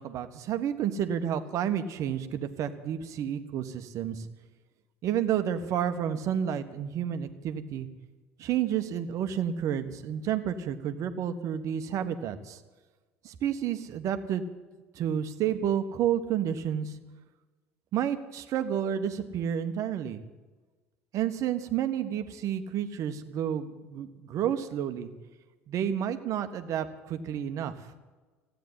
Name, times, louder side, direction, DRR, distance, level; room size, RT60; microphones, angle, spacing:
voice 1, 0.0-4.3 5.0-7.9 8.4-12.6 13.2-14.4 14.9-16.9 17.9-20.2 21.1-25.1 25.7-27.7, right 9 dB, 50° right, 9 dB, 1.4 m, -30 dB
16.0 x 9.3 x 9.7 m, 1.3 s
figure-of-eight pair, 65°, 7 cm